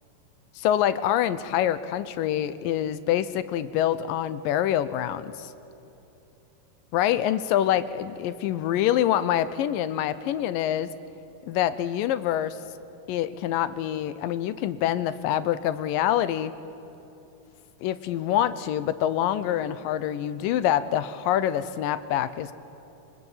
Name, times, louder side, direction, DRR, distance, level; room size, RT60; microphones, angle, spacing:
voice 1, 0.6-5.5 6.9-10.9 11.5-12.6 13.1-16.5 17.8-22.5, left 11 dB, 75° left, 14 dB, 2.3 m, -25 dB
27.5 x 24.5 x 8.2 m, 3.0 s
omnidirectional pair, 4.3 m